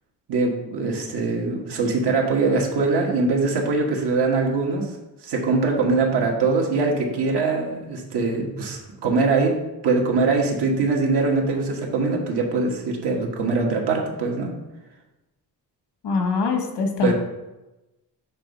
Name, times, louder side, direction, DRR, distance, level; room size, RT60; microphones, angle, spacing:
voice 1, 0.3-4.9 5.2-9.5 9.8-14.5 17.0-17.1, right 3 dB, 80° right, 0 dB, 1.5 m, -22 dB
voice 2, 16.0-17.1, left 4 dB, 85° left, 4 dB, 1.2 m, -23 dB
7.4 x 3.5 x 5.3 m, 1.0 s
cardioid pair, 135°, 40 cm